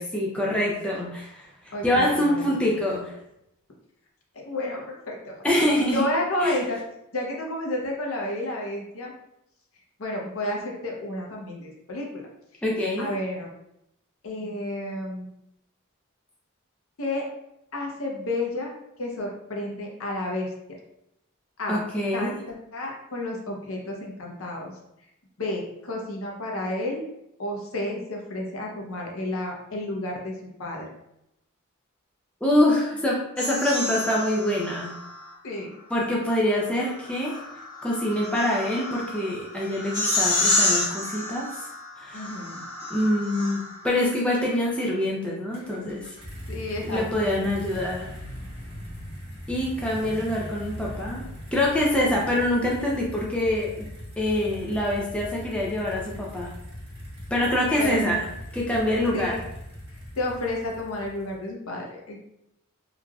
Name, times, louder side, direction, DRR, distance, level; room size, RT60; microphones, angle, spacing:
voice 1, 0.0-1.5 1.8-3.1 5.4-6.0 6.4-6.6 12.6-13.1 21.7-22.3 32.4-35.0 35.9-37.4 37.8-41.5 42.0-42.3 42.9-46.1 46.8-48.1 49.5-51.2 51.5-53.9 54.2-56.5 57.3-58.3 58.5-59.4, left 1 dB, 5° left, -3 dB, 0.3 m, -25 dB
voice 2, 1.7-2.5 4.3-5.4 5.9-6.8 7.1-9.1 10.0-12.2 13.0-13.5 14.2-15.3 17.0-17.2 17.7-18.7 19.0-20.5 21.6-21.8 22.1-24.7 25.4-27.0 27.4-30.3 30.6-30.9 35.4-35.7 42.1-42.7 46.5-47.0 47.4-47.6 57.7-58.3 59.1-59.3 60.2-62.2, left 1 dB, 65° left, -1 dB, 0.7 m, -31 dB
sound 1, 33.4-35.3 36.8-44.0, left 2 dB, 45° left, 1.1 m, -29 dB
sound 2, 45.5-61.5, equal, 25° right, 1.0 m, -40 dB
3.2 x 2.4 x 2.2 m, 0.82 s
head